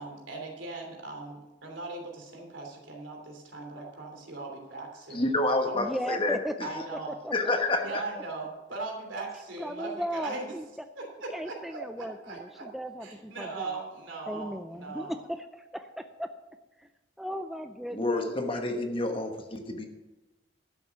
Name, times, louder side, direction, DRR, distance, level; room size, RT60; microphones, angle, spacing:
voice 1, 0.0-5.3 5.6-5.9 6.6-7.1 7.8-10.5 11.0-12.7 13.0-15.1, right 3 dB, 85° right, 1 dB, 3.1 m, -39 dB
voice 2, 5.1-6.4 7.3-7.8 17.9-19.8, left 2 dB, 30° left, 4 dB, 1.2 m, -28 dB
voice 3, 5.7-6.5 7.1-8.2 9.6-10.7 11.3-13.8 14.3-16.3 16.8-16.9 17.2-19.1, equal, ahead, 7 dB, 0.4 m, -37 dB
11.5 x 7.7 x 5.9 m, 1.1 s
head